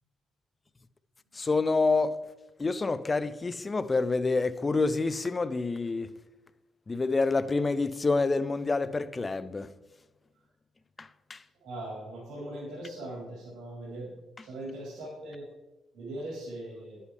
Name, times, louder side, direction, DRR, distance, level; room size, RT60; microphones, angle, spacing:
voice 1, 1.3-2.2 2.6-6.1 6.9-9.7 11.0-11.4, left 3 dB, 25° left, 0.5 m, -27 dB
voice 2, 11.6-14.1 14.4-15.4 15.9-17.0, right 1 dB, 80° right, 3.1 m, -40 dB
11.0 x 8.4 x 3.3 m
cardioid pair, 90°, 0 cm